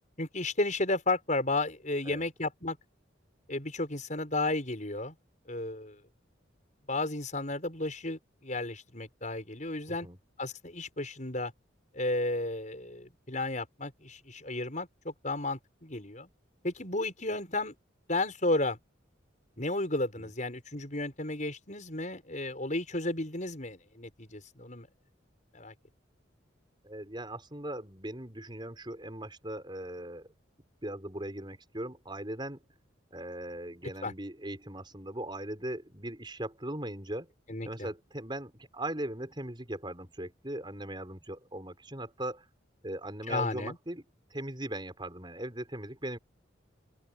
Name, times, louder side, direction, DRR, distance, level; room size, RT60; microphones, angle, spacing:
voice 1, 0.2-2.8 3.5-5.1 5.5-5.9 6.9-10.1 10.4-11.5 11.9-16.3 16.6-17.7 18.1-18.8 19.6-24.9 25.5-25.7 34.0-34.1 37.5-37.9 43.3-43.8, left 2 dB, 40° left, 6.5 m, -33 dB
voice 2, 26.8-30.3 30.8-32.6 33.1-37.3 37.6-42.5 42.8-44.0 44.3-46.2, right 1 dB, 25° right, 5.4 m, -39 dB
open air
head